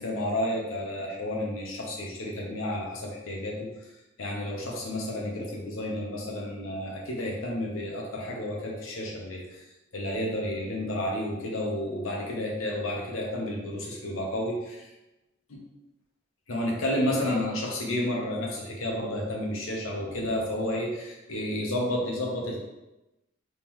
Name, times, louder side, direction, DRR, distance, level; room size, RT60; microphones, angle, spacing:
voice 1, 0.0-3.7 4.2-9.6 9.9-14.9 15.5-15.6 16.5-22.6, left 1 dB, 85° left, -1 dB, 1.0 m, -31 dB
3.6 x 3.3 x 3.0 m, 1.0 s
head